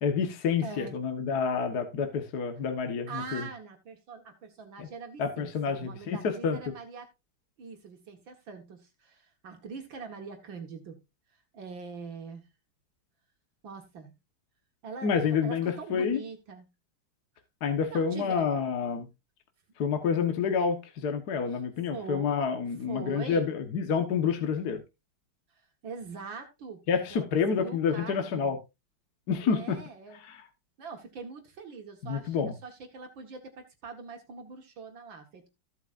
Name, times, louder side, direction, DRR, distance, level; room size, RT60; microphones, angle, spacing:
voice 1, 0.0-3.5 4.8-4.9 5.2-6.6 15.0-16.2 17.6-19.1 19.8-24.8 26.9-28.6 29.3-29.8 30.2-30.4 32.0-32.5, left 6 dB, 50° left, 1.7 m, -28 dB
voice 2, 0.6-1.0 3.1-7.1 7.6-11.0 11.5-12.5 13.6-14.1 14.8-16.7 17.9-18.5 21.5-21.6 21.9-22.3 22.9-23.5 25.5-26.8 27.1-27.2 27.5-28.5 29.4-30.2 30.8-32.4 32.6-35.5, right 5 dB, 65° right, 2.2 m, -43 dB
15.0 x 8.1 x 2.5 m
omnidirectional pair, 2.3 m